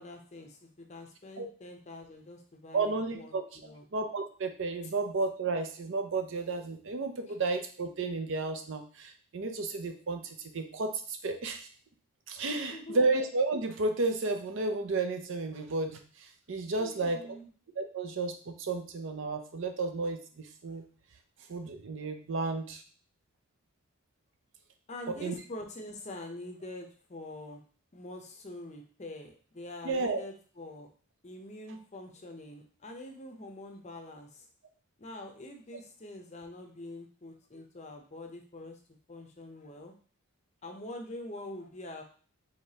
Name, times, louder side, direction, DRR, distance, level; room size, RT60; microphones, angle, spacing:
voice 1, 0.0-3.8 4.8-4.9 7.3-7.4 12.5-13.0 16.8-17.5 24.9-27.6 27.9-30.9 31.2-34.5 35.0-38.8 39.1-39.9 40.6-42.0, left 1 dB, 30° left, 3 dB, 0.6 m, -45 dB
voice 2, 2.7-3.6 3.9-11.7 12.3-16.0 16.5-17.3 17.8-20.2 20.6-20.8 21.5-22.8 25.1-25.3 29.8-30.2, right 3 dB, 55° right, 6 dB, 0.5 m, -32 dB
4.8 x 3.2 x 2.8 m, 0.42 s
head